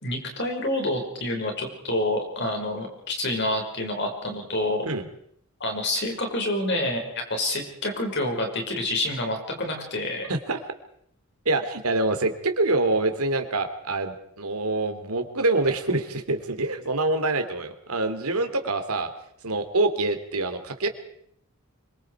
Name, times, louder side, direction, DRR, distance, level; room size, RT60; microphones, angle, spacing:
voice 1, 0.0-4.9 5.6-10.3, left 1 dB, 50° left, 2 dB, 5.6 m, -28 dB
voice 2, 10.3-10.6 11.4-19.1 19.4-20.9, right 2 dB, 90° right, 8 dB, 2.7 m, -25 dB
25.5 x 23.5 x 4.9 m, 0.67 s
head